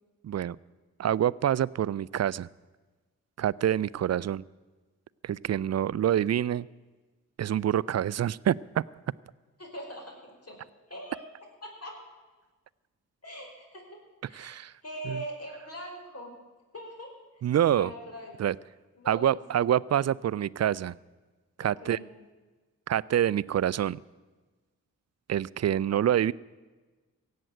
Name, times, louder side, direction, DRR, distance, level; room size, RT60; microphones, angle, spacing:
voice 1, 0.2-0.6 1.0-2.5 3.4-4.4 5.2-6.7 7.4-8.8 14.3-14.7 15.1-15.2 17.4-17.9 18.4-18.6 19.1-21.0 21.6-22.0 22.9-24.0 25.3-26.3, right 10 dB, 50° right, 23 dB, 0.4 m, -26 dB
voice 2, 9.6-10.6 10.9-11.3 11.6-12.0 13.2-14.0 14.3-16.3 16.7-17.1 17.8-18.3 19.0-19.6 21.6-22.1, equal, 45° left, 1 dB, 4.8 m, -42 dB
16.5 x 7.7 x 9.2 m, 1.3 s
supercardioid pair, 40°, 35 cm